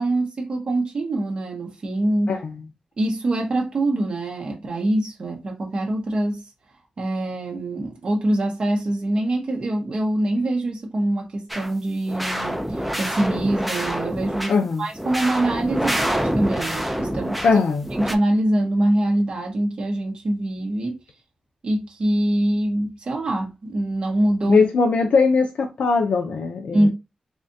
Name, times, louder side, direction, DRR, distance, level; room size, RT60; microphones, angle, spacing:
voice 1, 0.0-2.4 3.0-6.4 7.0-14.5 14.8-17.4 17.9-21.0 21.6-24.7 26.7-26.9, right 1 dB, 40° right, 0.8 m, -24 dB
sound 1, 11.5-11.7 12.1-14.5 14.9-17.5 17.8-18.1, equal, ahead, 0.4 m, -26 dB
voice 2, 14.5-14.9 17.4-17.9 24.5-26.9, left 4 dB, 70° left, 0.5 m, -20 dB
3.5 x 3.2 x 2.6 m
wide cardioid pair, 170°, 2 cm